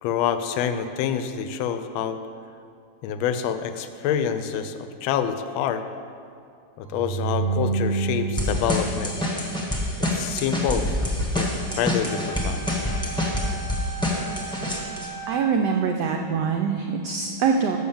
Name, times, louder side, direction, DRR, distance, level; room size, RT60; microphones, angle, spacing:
voice 1, 0.0-2.2 3.0-5.8 6.8-9.2 10.1-10.9 11.3-12.7, left 8 dB, 80° left, 9 dB, 1.3 m, -27 dB
sound 1, 6.9-10.1, right 4 dB, 50° right, 0.5 m, -28 dB
sound 2, 8.4-15.1, left 1 dB, 5° left, 0.5 m, -27 dB
Wind instrument woodwind instrument, 12.0-15.8, right 4 dB, 60° left, 1.0 m, -38 dB
voice 2, 15.3-17.8, right 6 dB, 80° right, 3 dB, 0.9 m, -24 dB
6.5 x 6.3 x 7.0 m, 2.4 s
omnidirectional pair, 2.3 m